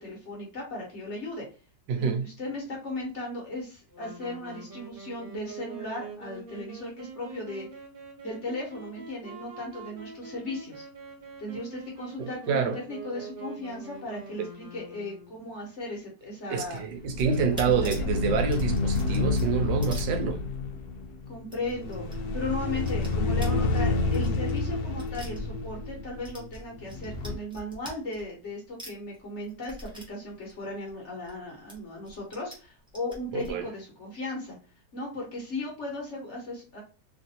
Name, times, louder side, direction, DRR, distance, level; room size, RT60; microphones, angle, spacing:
voice 1, 0.0-1.5 2.0-7.7 8.2-10.8 11.4-16.8 17.5-18.1 21.3-34.6 34.9-36.8, left 2 dB, 45° left, 1.2 m, -36 dB
voice 2, 1.9-2.2 12.2-12.8 16.5-20.4 33.3-33.6, right 6 dB, 85° right, 1.3 m, -27 dB
Wind instrument woodwind instrument, 3.9-15.6, right 3 dB, 55° right, 0.6 m, -45 dB
sound 1, 16.6-20.8 21.0-21.1 21.4-22.2 22.4-25.9 26.2-28.5 28.8-31.4 31.7-32.6 32.9-33.5, equal, 5° right, 0.4 m, -44 dB
sound 2, 17.0-27.4, left 3 dB, 70° left, 1.0 m, -29 dB
3.2 x 2.5 x 2.7 m
omnidirectional pair, 1.9 m